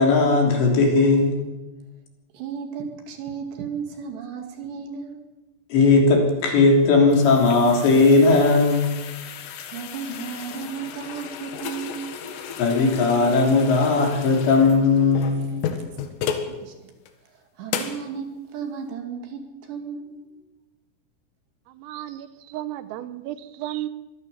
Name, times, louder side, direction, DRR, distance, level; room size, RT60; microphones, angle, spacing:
voice 1, 0.0-1.4 5.7-8.9 12.6-15.6, left 3 dB, 60° left, 1 dB, 5.4 m, -17 dB
voice 2, 2.3-5.2 9.7-12.2 16.2-16.9 17.6-20.1, right 7 dB, 60° right, 5 dB, 4.0 m, -34 dB
sound 1, 6.7-16.5 17.1-17.2 17.7-18.1, left 8 dB, 80° left, 4.2 m, -34 dB
voice 3, 21.8-23.9, right 14 dB, 85° right, 13 dB, 3.6 m, -33 dB
24.0 x 16.5 x 7.0 m, 1.1 s
omnidirectional pair, 5.9 m